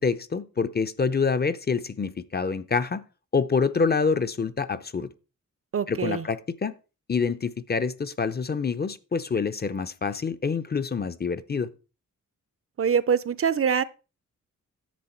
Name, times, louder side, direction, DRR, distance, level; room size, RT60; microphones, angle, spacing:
voice 1, 0.0-3.0 3.3-5.1 5.9-6.7 7.1-11.7, left 5 dB, 35° left, 0.6 m, -26 dB
voice 2, 5.7-6.2 12.8-13.8, right 7 dB, 50° right, 0.5 m, -24 dB
10.5 x 7.7 x 4.4 m
wide cardioid pair, 150°, 30 cm